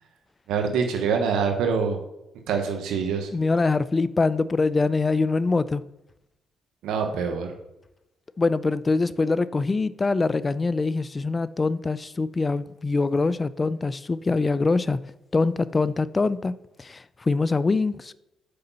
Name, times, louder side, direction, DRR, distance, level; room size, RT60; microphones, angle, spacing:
voice 1, 0.5-2.0 2.5-3.3 6.8-7.5, right 6 dB, 85° right, 1.0 m, -25 dB
voice 2, 3.3-5.8 8.4-15.0 15.3-18.1, left 3 dB, 25° left, 0.4 m, -24 dB
6.7 x 5.0 x 5.5 m
cardioid pair, 90°, 0 cm